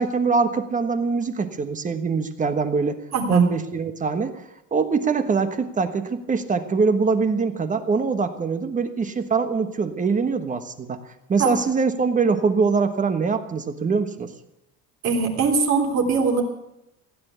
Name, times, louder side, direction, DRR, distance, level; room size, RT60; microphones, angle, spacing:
voice 1, 0.0-3.0 3.3-4.4 4.7-11.0 11.3-14.3, right 4 dB, 25° right, 9 dB, 1.4 m, -23 dB
voice 2, 3.1-3.4 11.4-11.5 15.0-16.4, right 5 dB, 55° right, 2 dB, 3.6 m, -21 dB
16.5 x 9.8 x 8.2 m, 0.84 s
cardioid pair, 135°, 33 cm